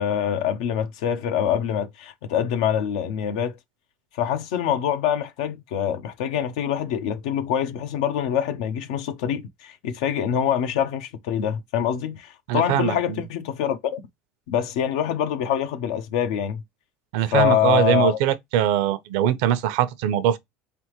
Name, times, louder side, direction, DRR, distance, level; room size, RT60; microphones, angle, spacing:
voice 1, 0.0-3.6 4.2-14.0 14.5-16.6 17.3-18.2, left 9 dB, 85° left, 0.6 m, -25 dB
voice 2, 12.5-13.2 17.1-20.4, right 11 dB, 80° right, 0.6 m, -22 dB
3.8 x 3.4 x 3.0 m
cardioid pair, 135°, 4 cm